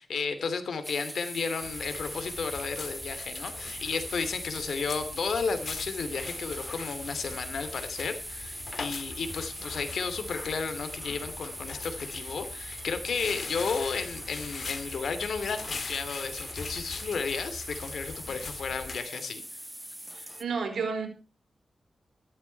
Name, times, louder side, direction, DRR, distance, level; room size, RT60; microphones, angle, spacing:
voice 1, 0.0-19.4, left 5 dB, 80° left, 10 dB, 2.7 m, -33 dB
sound 1, 0.8-20.4, equal, 5° right, 1.4 m, -41 dB
sound 2, 1.6-19.0, left 4 dB, 55° left, 1.9 m, -42 dB
voice 2, 20.1-21.1, right 5 dB, 80° right, 7 dB, 4.3 m, -31 dB
14.5 x 12.5 x 4.6 m, 0.33 s
wide cardioid pair, 90°, 0 cm